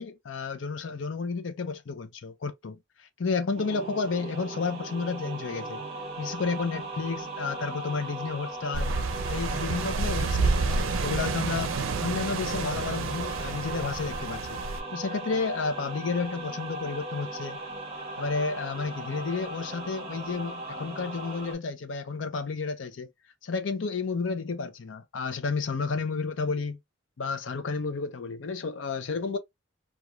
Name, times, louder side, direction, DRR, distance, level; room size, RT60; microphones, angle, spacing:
voice 1, 0.0-5.8 6.2-8.9 9.3-14.6 14.9-17.6 18.2-23.1 23.4-26.8 27.2-29.4, left 4 dB, 70° left, 0.5 m, -31 dB
sound 1, 3.6-21.5, right 2 dB, 30° right, 0.9 m, -38 dB
sound 2, 8.7-14.8, right 4 dB, 85° right, 0.4 m, -29 dB
3.0 x 2.4 x 2.3 m
head